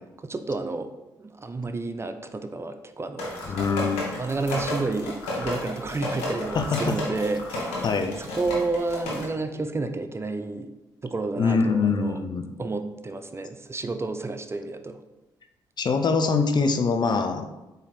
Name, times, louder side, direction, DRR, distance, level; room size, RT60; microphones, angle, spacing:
voice 1, 0.2-0.9 1.2-3.4 4.2-7.8 8.2-10.7 11.0-12.2 12.6-15.0, right 3 dB, 25° right, 8 dB, 0.4 m, -30 dB
sound 1, 3.2-9.3, left 1 dB, 80° left, 1.0 m, -32 dB
voice 2, 3.5-4.0 6.5-7.0 7.8-8.1 11.4-12.5 15.8-17.4, left 4 dB, 45° left, 7 dB, 0.5 m, -23 dB
4.1 x 2.7 x 4.1 m, 1.0 s
hypercardioid pair, 45°, 10 cm